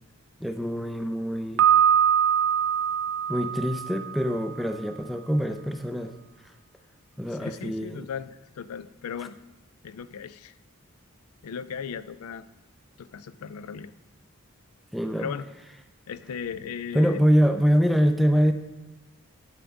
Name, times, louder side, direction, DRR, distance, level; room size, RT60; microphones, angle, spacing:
voice 1, 0.4-1.7 3.3-6.1 7.2-8.1 14.9-15.3 16.9-18.5, equal, ahead, 6 dB, 0.3 m, -24 dB
Piano, 1.6-4.5, right 9 dB, 65° right, 0.4 m, -23 dB
voice 2, 7.3-9.4 9.8-10.5 11.4-12.4 13.0-13.9 15.2-15.4 16.1-17.2, left 7 dB, 85° left, 14 dB, 0.4 m, -37 dB
10.5 x 5.2 x 3.4 m, 1.1 s
head